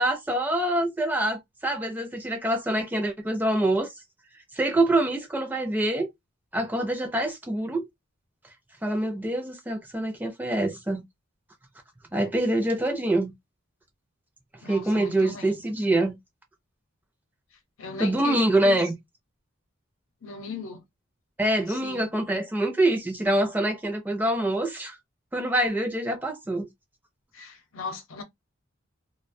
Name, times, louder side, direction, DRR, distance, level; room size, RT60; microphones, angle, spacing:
voice 1, 0.0-3.9 4.5-6.1 6.5-7.8 8.8-11.0 12.1-13.3 14.7-16.2 18.0-18.9 21.4-25.0 25.3-26.7, right 1 dB, 10° right, 0.4 m, -25 dB
voice 2, 14.6-15.6 17.8-18.9 20.2-20.8 21.7-22.1 27.3-28.2, left 4 dB, 70° left, 0.7 m, -37 dB
2.2 x 2.1 x 2.5 m
head